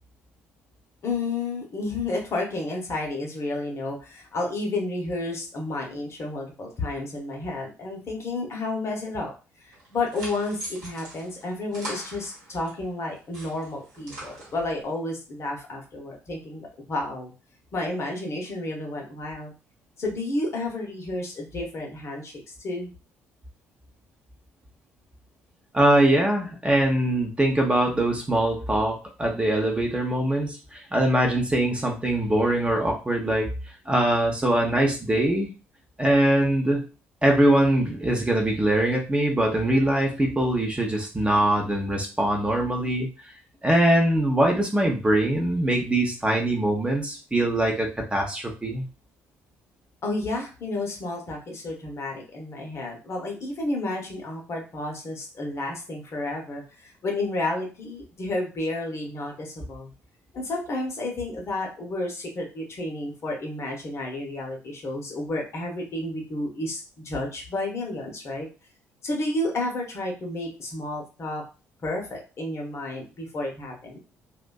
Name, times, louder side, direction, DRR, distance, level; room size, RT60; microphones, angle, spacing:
voice 1, 1.0-9.3 9.6-17.3 17.7-19.5 20.0-22.9 50.0-59.9 60.3-68.5 69.0-71.4 71.8-74.0, left 2 dB, 40° left, 0 dB, 0.8 m, -31 dB
sound 1, 9.7-12.8 13.1-14.9, right 1 dB, 75° right, 1.0 m, -41 dB
voice 2, 25.7-33.5 33.9-35.5 36.0-36.9 37.2-43.1 43.6-48.8, right 1 dB, 15° right, 1 dB, 0.7 m, -22 dB
2.5 x 2.2 x 2.2 m, 0.32 s
figure-of-eight pair, 50°, 7 cm